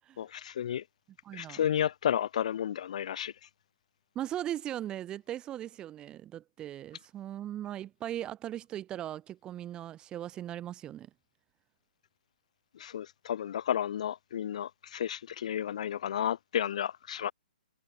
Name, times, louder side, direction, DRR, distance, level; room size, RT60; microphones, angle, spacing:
voice 1, 0.2-0.8 1.3-3.3 12.7-17.3, left 9 dB, 45° left, 6.5 m, -32 dB
voice 2, 1.2-1.7 4.1-11.1, right 12 dB, 15° right, 4.2 m, -38 dB
figure-of-eight pair, 125°, 5 cm